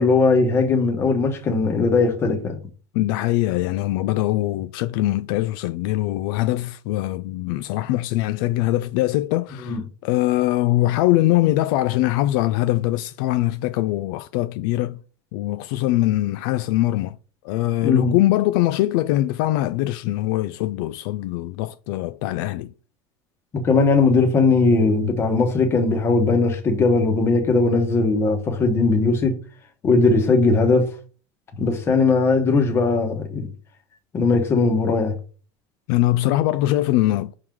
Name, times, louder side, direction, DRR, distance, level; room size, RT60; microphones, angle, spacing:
voice 1, 0.0-2.6 9.6-9.8 17.8-18.1 23.5-29.4 29.8-30.9 31.6-33.5 34.1-35.1, left 3 dB, 20° left, 1.2 m, -19 dB
voice 2, 2.9-15.0 15.3-17.2 17.4-22.7 35.9-37.3, left 16 dB, 65° left, 0.4 m, -22 dB
6.3 x 3.8 x 4.5 m
cardioid pair, 175°, 12 cm